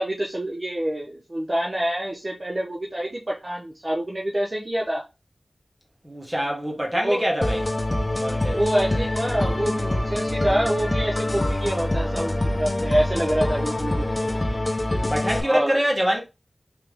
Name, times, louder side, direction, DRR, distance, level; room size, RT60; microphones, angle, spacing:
voice 1, 0.0-5.0 6.9-7.2 8.4-14.4 15.4-15.8, right 1 dB, 35° right, 0.7 m, -26 dB
voice 2, 6.0-7.6 8.2-8.6 15.1-16.2, equal, 10° right, 1.4 m, -24 dB
sound 1, 7.4-15.4, left 1 dB, 30° left, 0.7 m, -25 dB
3.4 x 3.0 x 3.4 m
wide cardioid pair, 70°, 0 cm